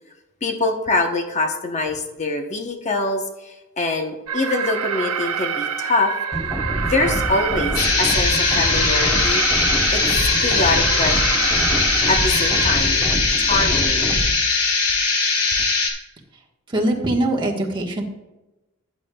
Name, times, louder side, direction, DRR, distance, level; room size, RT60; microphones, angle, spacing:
voice 1, 0.4-6.1 6.8-9.4 9.9-10.0 10.4-11.1 12.1-13.0 13.4-14.1, left 2 dB, 35° left, 3 dB, 0.9 m, -24 dB
Alarm, 4.3-12.8, right 7 dB, 90° right, 0.8 m, -27 dB
sound 1, 6.3-14.3, equal, 5° right, 0.9 m, -27 dB
sound 2, 7.7-15.9, left 4 dB, 85° left, 1.8 m, -20 dB
voice 2, 16.7-18.0, right 1 dB, 20° right, -2 dB, 1.3 m, -22 dB
14.0 x 8.3 x 2.3 m, 1.0 s
head